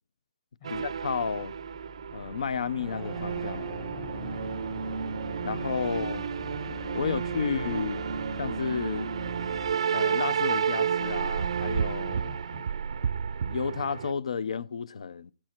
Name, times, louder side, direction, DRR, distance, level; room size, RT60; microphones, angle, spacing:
sound 1, 0.6-14.1, right 7 dB, 50° right, 0.5 m, -31 dB
voice 1, 0.7-1.5 2.1-3.8 5.4-6.3 6.9-8.0 8.4-9.1 9.9-12.3 13.5-15.3, left 6 dB, 60° left, 0.7 m, -32 dB
sound 2, 0.7-9.8, left 5 dB, 10° left, 0.6 m, -44 dB
voice 2, 3.9-5.0 5.5-6.3 12.3-12.7, left 9 dB, 30° left, 1.5 m, -52 dB
17.5 x 8.8 x 4.5 m
hypercardioid pair, 175°, 4 cm